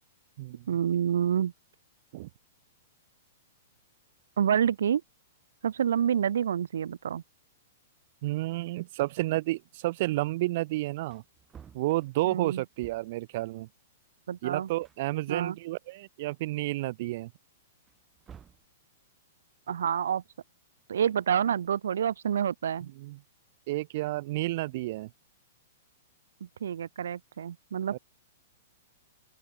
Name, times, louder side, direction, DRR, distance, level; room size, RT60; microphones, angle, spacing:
voice 1, 0.7-1.5 4.4-5.0 5.6-7.2 12.2-12.6 14.3-14.7 15.3-15.6 19.7-20.2 20.9-22.9 26.6-28.0, right 8 dB, 85° right, 0.9 m, -28 dB
voice 2, 8.2-11.2 11.7-13.7 14.4-17.3 23.0-23.2 23.7-25.1 27.9-28.0, right 18 dB, 40° right, 1.2 m, -31 dB
Wood, 11.1-13.3 14.4-14.5 14.8-16.0 16.5-16.6 17.8-18.8 20.8-21.7, right 8 dB, 10° right, 5.2 m, -55 dB
open air
hypercardioid pair, 175°, 0 cm